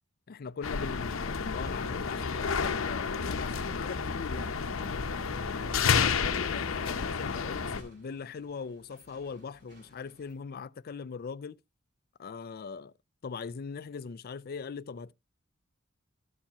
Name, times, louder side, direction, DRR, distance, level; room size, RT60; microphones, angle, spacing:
voice 1, 0.3-4.6 6.0-11.6 12.2-12.9 13.2-15.1, left 5 dB, 50° left, 0.4 m, -40 dB
sound 1, 0.6-7.8, left 5 dB, 80° left, 0.7 m, -30 dB
sound 2, 3.4-10.3, equal, 55° right, 4.7 m, -58 dB
13.5 x 7.2 x 2.9 m
head